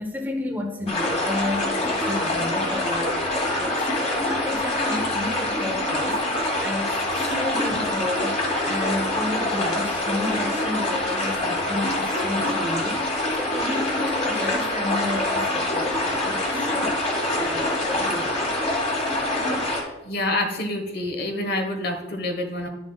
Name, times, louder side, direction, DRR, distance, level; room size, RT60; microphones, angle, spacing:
voice 1, 0.0-6.2 6.6-17.0 17.3-18.4, left 1 dB, 10° right, 4 dB, 0.7 m, -32 dB
sound 1, 0.9-19.8, left 1 dB, 35° left, 2.0 m, -25 dB
voice 2, 20.0-22.7, left 1 dB, 60° left, 4 dB, 1.2 m, -27 dB
10.5 x 7.2 x 2.3 m, 1.0 s
head